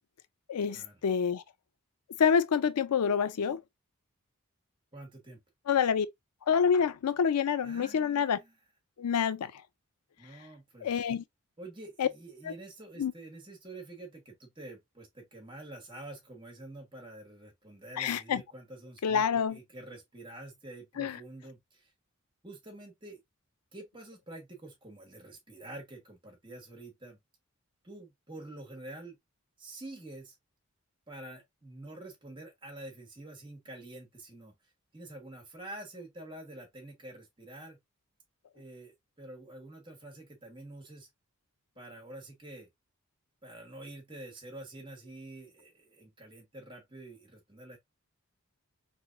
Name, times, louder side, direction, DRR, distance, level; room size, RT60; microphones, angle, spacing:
voice 1, 0.5-1.4 2.2-3.6 5.7-6.1 6.5-8.4 9.0-9.5 10.8-11.2 12.0-12.1 12.4-12.5 13.0-13.1 18.0-18.4 19.0-19.6 21.0-21.2, left 7 dB, 90° left, 0.4 m, -27 dB
voice 2, 4.9-5.4 7.6-8.5 10.2-10.9 11.6-21.9 22.4-23.2 23.7-27.2 27.8-29.2 29.6-30.3 31.1-34.5 34.9-37.8 38.5-41.1 41.8-42.7 43.4-47.8, right 2 dB, 20° right, 1.3 m, -47 dB
3.9 x 3.2 x 2.6 m
head